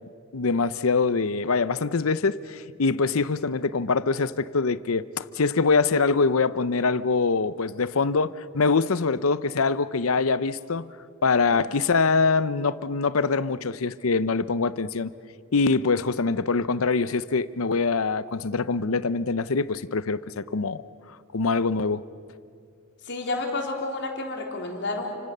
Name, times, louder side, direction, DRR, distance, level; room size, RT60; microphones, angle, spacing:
voice 1, 0.3-10.9 11.2-15.1 15.5-20.8 21.3-22.0, left 4 dB, 75° left, 15 dB, 0.7 m, -24 dB
voice 2, 23.1-25.2, left 2 dB, 55° left, 1 dB, 3.7 m, -30 dB
30.0 x 25.0 x 6.7 m, 2.3 s
head